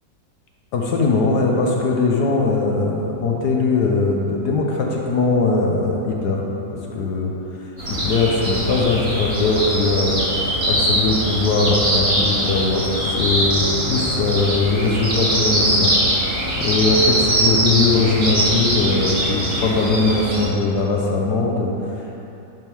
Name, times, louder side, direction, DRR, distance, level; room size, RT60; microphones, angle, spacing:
voice 1, 0.7-6.4 6.7-7.3 7.9-10.3 10.6-15.9 16.6-22.3, left 3 dB, 70° left, -1 dB, 1.3 m, -20 dB
sound 1, 7.8-20.4, right 1 dB, 50° right, 2.3 m, -22 dB
11.0 x 3.7 x 4.5 m, 2.8 s
omnidirectional pair, 1.9 m